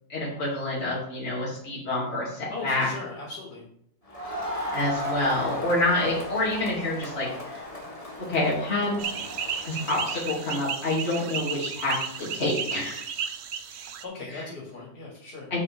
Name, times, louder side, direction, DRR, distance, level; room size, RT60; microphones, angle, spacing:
voice 1, 0.1-2.9 4.7-7.7 8.3-9.0 9.6-13.0 14.3-14.5 15.5-15.6, left 2 dB, 40° left, -7 dB, 2.8 m, -27 dB
voice 2, 2.5-3.6 14.0-15.5, left 3 dB, 75° left, -3 dB, 3.0 m, -38 dB
Crowd, 4.1-10.7, left 1 dB, 20° left, 1.9 m, -36 dB
sound 1, 9.0-14.0, right 7 dB, 55° right, 0.7 m, -33 dB
8.0 x 7.6 x 3.5 m, 0.68 s
omnidirectional pair, 1.7 m